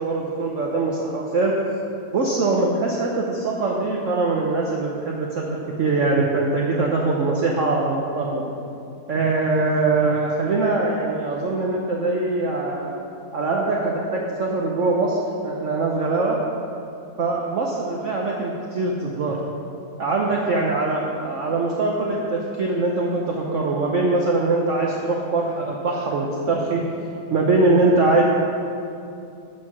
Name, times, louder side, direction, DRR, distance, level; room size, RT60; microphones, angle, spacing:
voice 1, 0.0-1.5 2.1-8.4 9.1-12.9 13.3-15.2 15.4-16.4 17.2-19.4 20.0-26.8 27.3-28.2, right 3 dB, 55° right, -2 dB, 1.0 m, -22 dB
12.5 x 4.6 x 6.0 m, 2.6 s
omnidirectional pair, 1.9 m